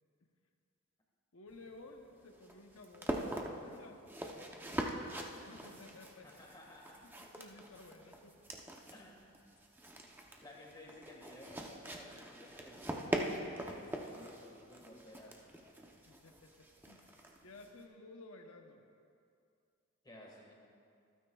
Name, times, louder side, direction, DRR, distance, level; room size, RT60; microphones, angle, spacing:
voice 1, 1.3-3.2 3.5-4.1 4.3-6.4 7.0-8.4 8.7-8.8 16.1-18.8, left 2 dB, 90° left, 3 dB, 0.9 m, -56 dB
sound 1, 1.5-17.8, right 1 dB, 10° right, 0.7 m, -43 dB
voice 2, 6.2-7.0 8.9-9.2 10.4-15.4 20.0-20.6, left 1 dB, 20° left, -2 dB, 1.7 m, -55 dB
25.5 x 9.3 x 2.3 m, 2.4 s
head